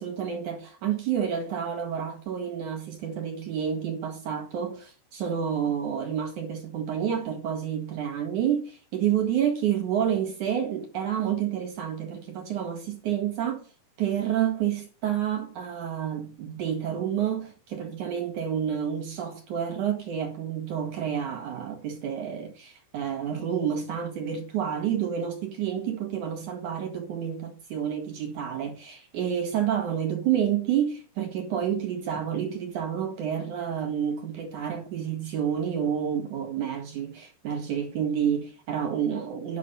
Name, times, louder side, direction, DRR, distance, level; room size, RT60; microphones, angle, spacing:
voice 1, 0.0-13.7 14.0-39.6, right 9 dB, 55° right, 2.5 m, -29 dB
10.5 x 6.4 x 7.0 m
omnidirectional pair, 5.6 m